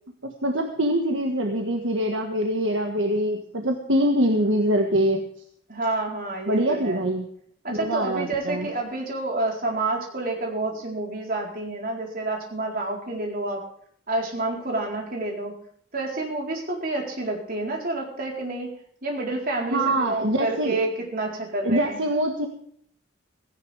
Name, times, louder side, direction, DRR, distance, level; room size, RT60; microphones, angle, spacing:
voice 1, 0.2-5.2 6.5-7.3 7.7-8.7 19.7-20.8 21.6-22.5, right 1 dB, 65° right, 3 dB, 1.7 m, -24 dB
voice 2, 5.7-7.1 7.6-13.7 14.1-15.5 15.9-18.7 19.0-22.0, right 2 dB, 45° right, 0 dB, 4.3 m, -29 dB
17.0 x 16.5 x 3.6 m, 0.62 s
head